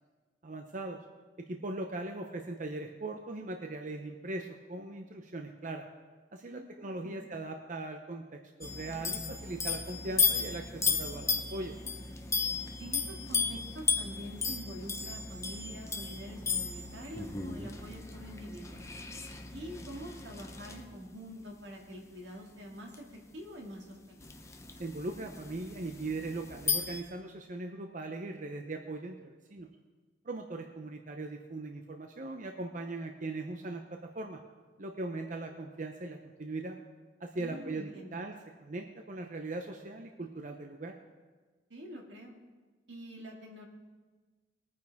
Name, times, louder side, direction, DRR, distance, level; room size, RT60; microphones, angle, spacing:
voice 1, 0.4-1.0 1.4-5.9 6.3-11.8 24.8-29.7 30.2-34.4 34.8-36.8 37.2-38.3 38.6-41.0, right 2 dB, 45° right, 4 dB, 0.7 m, -40 dB
voice 2, 6.5-7.4 12.8-18.9 19.5-24.3 37.4-38.2 41.7-42.3 42.9-43.6, equal, 85° right, 0 dB, 2.2 m, -46 dB
sound 1, 8.6-20.8 22.9-23.0 24.2-27.0, left 5 dB, 15° left, 0.7 m, -35 dB
21.5 x 9.5 x 3.5 m, 1.3 s
head